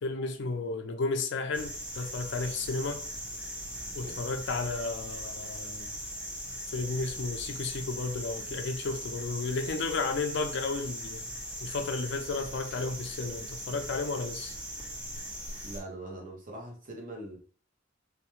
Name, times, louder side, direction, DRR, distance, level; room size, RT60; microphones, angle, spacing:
voice 1, 0.0-3.0 3.9-5.9 6.7-11.3 11.6-14.6, left 3 dB, 65° left, 0.4 m, -33 dB
sound 1, 1.5-15.8, equal, 10° right, 0.6 m, -40 dB
voice 2, 15.6-17.4, right 1 dB, 45° right, 0.8 m, -42 dB
2.4 x 2.1 x 2.9 m
head